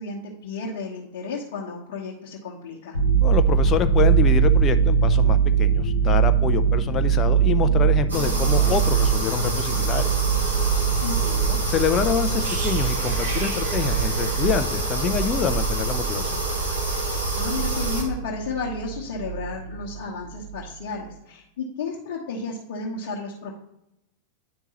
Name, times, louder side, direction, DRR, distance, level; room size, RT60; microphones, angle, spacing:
voice 1, 0.0-3.0 11.0-11.6 17.0-23.5, left 4 dB, 55° left, -4 dB, 1.0 m, -33 dB
sound 1, 2.9-20.0 20.3-20.6, right 7 dB, 75° left, 0.7 m, -22 dB
voice 2, 3.2-10.1 11.7-16.4, left 8 dB, 30° left, 9 dB, 0.4 m, -26 dB
sound 2, 8.1-18.0, right 2 dB, 80° right, 1.9 m, -27 dB
sound 3, 12.4-16.2 16.5-16.7, right 3 dB, 55° right, 1.6 m, -38 dB
9.5 x 4.5 x 2.9 m, 0.82 s
figure-of-eight pair, 90°, 0 cm